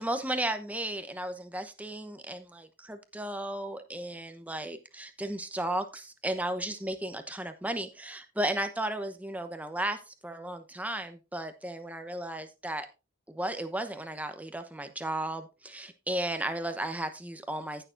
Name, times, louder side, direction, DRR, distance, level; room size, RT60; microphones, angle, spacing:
voice 1, 0.0-12.9 13.3-17.8, right 1 dB, 5° right, 8 dB, 0.9 m, -34 dB
15.5 x 6.7 x 2.6 m, 0.28 s
head